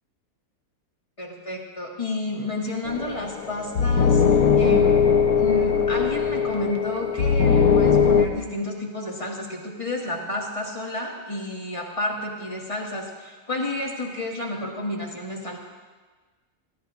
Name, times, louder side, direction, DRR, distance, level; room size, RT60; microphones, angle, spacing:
voice 1, 1.2-4.9 5.4-15.6, left 2 dB, 20° left, -3 dB, 1.9 m, -31 dB
sound 1, 2.9-8.3, left 6 dB, 75° left, 1.3 m, -20 dB
21.0 x 15.0 x 2.5 m, 1.3 s
omnidirectional pair, 1.6 m